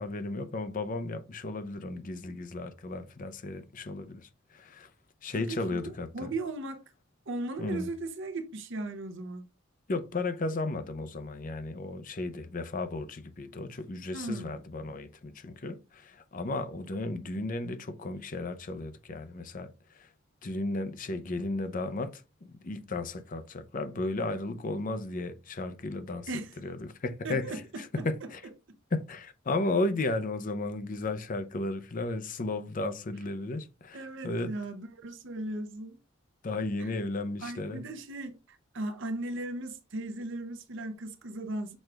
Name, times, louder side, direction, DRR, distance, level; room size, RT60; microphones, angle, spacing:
voice 1, 0.0-4.9 5.2-6.3 7.6-7.9 9.9-19.7 19.9-20.1 20.4-26.3 26.6-28.4 28.9-34.6 36.4-37.8, left 2 dB, 40° left, 0.5 m, -34 dB
voice 2, 5.3-6.8 7.3-9.5 14.1-14.6 26.3-26.5 27.2-28.1 28.7-28.8 33.9-36.0 36.8-36.9 37.4-41.8, right 2 dB, 60° right, 0.7 m, -37 dB
6.1 x 2.5 x 3.3 m
head